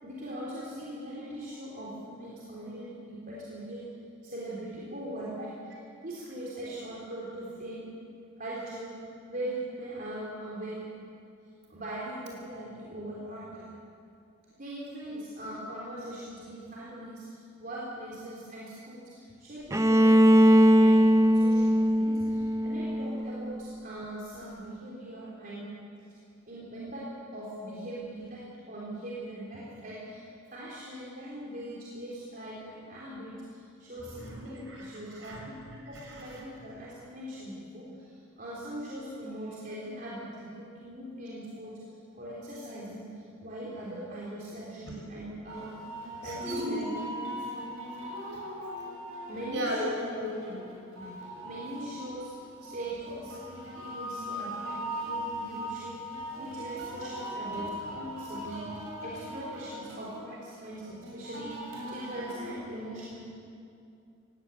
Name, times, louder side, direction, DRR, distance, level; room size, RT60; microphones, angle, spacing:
voice 1, 0.0-3.9 4.2-5.7 6.0-7.9 8.4-8.9 9.3-10.9 11.7-13.7 14.6-25.6 26.1-26.2 26.5-30.2 30.5-38.1 38.4-41.7 42.1-45.7 46.2-46.9 49.3-49.9 50.9-52.3 52.6-56.0 56.4-63.2, right 1 dB, 40° right, -7 dB, 3.6 m, -41 dB
Bowed string instrument, 19.7-23.6, equal, 15° right, 0.6 m, -21 dB
voice 2, 34.1-35.5 35.9-36.4 46.2-46.8 48.0-48.8 49.5-49.9 50.1-50.6, equal, 60° right, -1 dB, 6.2 m, -37 dB
sound 1, 45.5-62.5, equal, 90° right, 6.7 m, -40 dB
17.0 x 16.5 x 9.8 m, 2.5 s
head